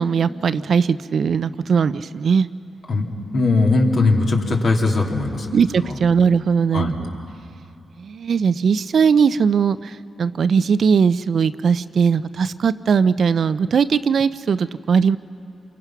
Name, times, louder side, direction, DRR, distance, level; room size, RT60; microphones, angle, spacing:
voice 1, 0.0-2.5 5.5-7.2 8.0-15.2, right 6 dB, 65° right, 14 dB, 0.5 m, -19 dB
voice 2, 2.9-5.5 5.8-6.0 6.7-7.0, left 3 dB, 60° left, 0 dB, 2.7 m, -19 dB
28.5 x 23.0 x 6.0 m, 2.7 s
cardioid pair, 85°, 0 cm